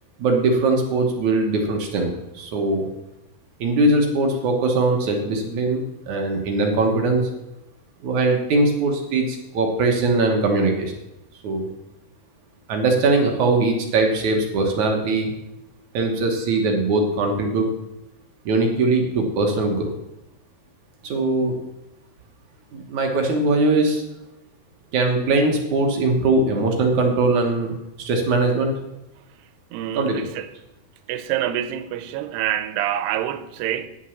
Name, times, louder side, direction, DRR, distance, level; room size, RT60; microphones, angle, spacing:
voice 1, 0.2-2.9 3.6-7.3 8.0-10.9 11.4-11.7 12.7-15.3 15.9-17.7 18.5-19.9 21.0-21.5 22.7-24.0 24.9-28.7 29.9-30.2, right 2 dB, 60° right, 2.2 m, -21 dB
voice 2, 29.7-30.5 31.1-33.9, right 11 dB, 85° right, 2.8 m, -26 dB
10.0 x 8.2 x 7.1 m
omnidirectional pair, 4.7 m